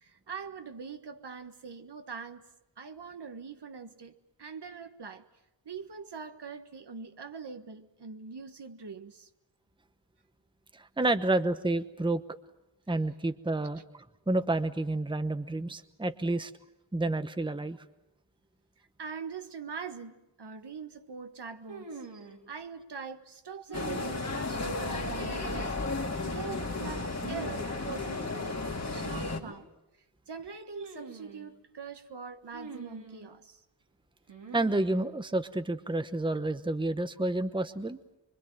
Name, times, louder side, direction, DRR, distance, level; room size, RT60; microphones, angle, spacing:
voice 1, 0.0-2.5 2.8-5.3 5.6-9.3 19.0-22.0 22.5-25.6 26.0-29.7 30.3-33.6, right 5 dB, 65° right, 1.5 m, -43 dB
voice 2, 10.7-12.2 12.9-16.5 16.9-17.8 34.5-38.0, right 2 dB, 10° right, 1.0 m, -30 dB
sound 1, 21.7-22.4 23.7-24.5 25.2-25.9 27.2-27.7 27.9-28.0 28.9-29.6 30.7-31.5 32.5-33.3 34.3-35.0, right 4 dB, 85° right, 3.7 m, -45 dB
sound 2, 23.7-29.4, left 3 dB, 35° left, 2.5 m, -34 dB
25.0 x 23.5 x 9.1 m
wide cardioid pair, 85°, 44 cm